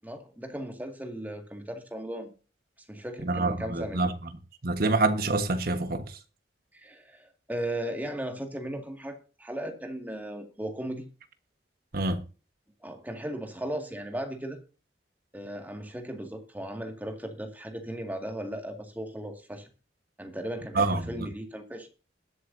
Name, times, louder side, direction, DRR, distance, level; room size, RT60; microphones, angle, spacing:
voice 1, 0.0-2.3 2.9-4.1 6.7-11.1 12.8-14.6 15.3-19.7 20.2-21.9, right 1 dB, 10° right, 2.1 m, -37 dB
voice 2, 3.2-4.1 4.6-6.0 11.9-12.2 20.7-21.3, right 2 dB, 60° right, 1.4 m, -26 dB
21.0 x 8.0 x 2.7 m
head